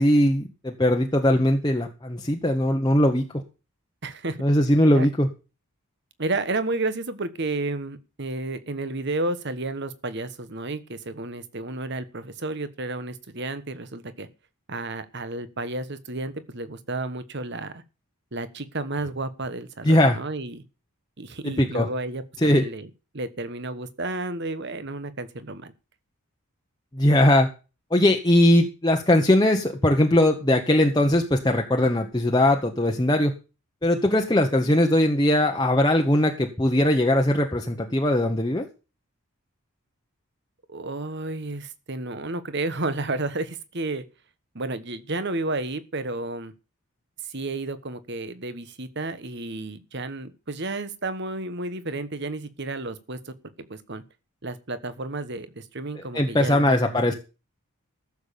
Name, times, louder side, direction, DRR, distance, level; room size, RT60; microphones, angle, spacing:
voice 1, 0.0-3.2 4.4-5.3 19.8-20.2 21.4-21.9 22.4-22.6 26.9-27.5 27.9-33.3 33.8-38.6 56.1-57.1, left 1 dB, 20° left, 2 dB, 1.1 m, -20 dB
voice 2, 4.0-4.4 4.9-5.1 6.2-14.3 14.7-17.8 18.3-20.6 21.2-25.7 40.7-44.0 44.5-46.5 47.2-54.0 54.4-56.8, right 2 dB, 50° right, 13 dB, 1.2 m, -32 dB
14.5 x 7.2 x 6.9 m, 0.32 s
head